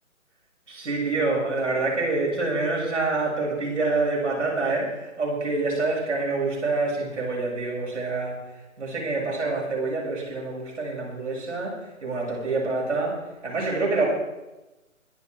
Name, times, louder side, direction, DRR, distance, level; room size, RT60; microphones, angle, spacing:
voice 1, 0.7-8.4 8.8-11.7 12.0-14.1, right 3 dB, 60° right, -2 dB, 7.3 m, -26 dB
22.5 x 10.5 x 4.7 m, 1.1 s
figure-of-eight pair, 145°, 42 cm